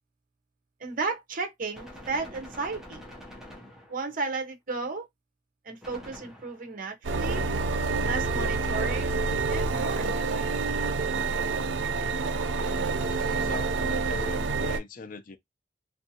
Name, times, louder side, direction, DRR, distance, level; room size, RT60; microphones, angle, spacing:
voice 1, 0.8-3.0 3.9-5.1 5.6-7.5 8.0-9.2 9.5-10.5, right 4 dB, 50° right, 0.7 m, -34 dB
Gunshot gunfire, 1.7-4.3 5.8-6.9 8.2-9.7 11.0-11.8 13.0-14.1, left 1 dB, ahead, 0.6 m, -47 dB
sound 1, 7.0-14.8, right 4 dB, 80° right, 0.4 m, -28 dB
voice 2, 13.4-15.4, left 3 dB, 50° left, 0.5 m, -40 dB
2.6 x 2.3 x 2.7 m
head